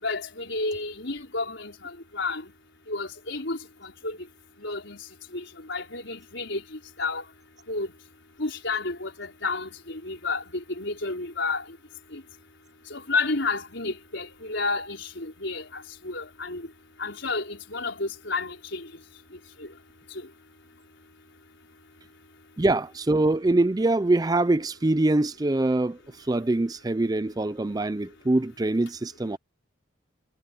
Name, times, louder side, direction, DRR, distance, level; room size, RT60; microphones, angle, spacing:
voice 1, 0.0-2.4 2.9-4.2 4.6-5.0 5.3-6.6 7.0-7.2 7.7-7.9 8.4-11.6 12.1-12.2 12.9-16.6 17.0-18.9 19.6-19.7, left 3 dB, 65° left, 4.6 m, -31 dB
voice 2, 22.6-29.4, right 2 dB, 20° right, 0.4 m, -24 dB
head